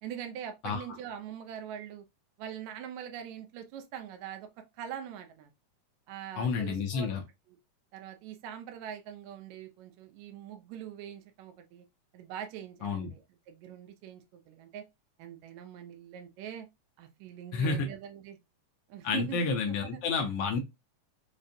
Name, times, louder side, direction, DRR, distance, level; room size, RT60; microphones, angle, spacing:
voice 1, 0.0-2.1 2.4-4.5 4.8-5.5 6.1-7.1 7.5-7.6 7.9-11.9 12.1-14.8 15.2-16.7 17.0-18.4 18.9-20.0, right 9 dB, 75° right, 1.9 m, -43 dB
voice 2, 6.4-7.2 12.8-13.1 17.5-17.9 19.0-20.6, left 4 dB, 75° left, 1.4 m, -30 dB
5.2 x 2.4 x 2.6 m
omnidirectional pair, 3.4 m